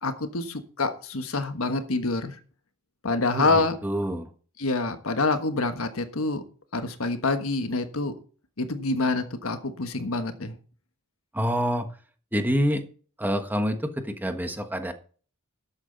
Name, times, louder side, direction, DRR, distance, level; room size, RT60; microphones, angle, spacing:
voice 1, 0.0-2.3 3.0-3.8 4.6-6.4 6.7-8.1 8.6-10.6, left 3 dB, 70° left, 8 dB, 1.4 m, -26 dB
voice 2, 3.3-4.3 11.3-11.9 12.3-12.8 13.2-14.9, equal, 10° right, 6 dB, 1.3 m, -27 dB
12.5 x 8.7 x 4.0 m, 0.40 s
head